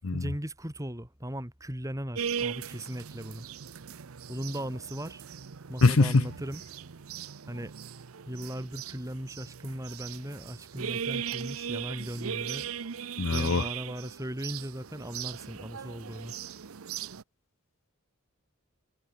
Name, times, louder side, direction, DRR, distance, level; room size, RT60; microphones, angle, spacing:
voice 1, 0.1-3.5 4.3-5.2 5.7-6.6 7.5-7.7 8.3-12.7 13.3-16.3, equal, 15° right, 3.0 m, -38 dB
sound 1, 2.1-17.2, right 8 dB, 80° right, 0.7 m, -39 dB
voice 2, 5.8-6.3 13.2-13.7, left 3 dB, 70° left, 0.7 m, -23 dB
head